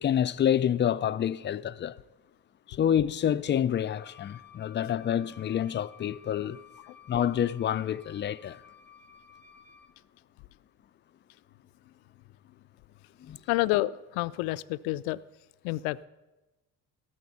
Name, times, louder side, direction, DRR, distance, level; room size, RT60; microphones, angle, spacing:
voice 1, 0.0-2.0 2.7-6.6 7.1-8.6 13.2-13.4, left 9 dB, 25° left, 0.3 m, -28 dB
Wind instrument woodwind instrument, 3.6-10.0, left 8 dB, 15° right, 1.6 m, -54 dB
voice 2, 13.5-15.2 15.6-16.1, left 18 dB, 75° left, 0.5 m, -29 dB
14.0 x 12.0 x 4.1 m
hypercardioid pair, 60°, 47 cm